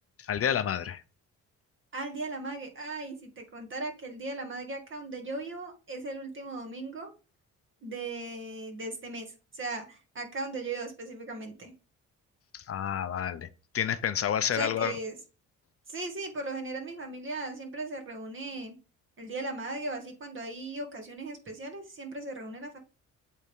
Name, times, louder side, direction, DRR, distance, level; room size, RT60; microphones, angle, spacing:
voice 1, 0.2-1.0 12.5-13.5 13.7-14.9, left 9 dB, 50° left, 0.6 m, -29 dB
voice 2, 1.9-7.1 7.8-11.7 14.5-15.2 15.9-18.8 19.2-22.8, right 2 dB, 40° right, 2.0 m, -38 dB
8.1 x 3.7 x 3.6 m
cardioid pair, 90°, 30 cm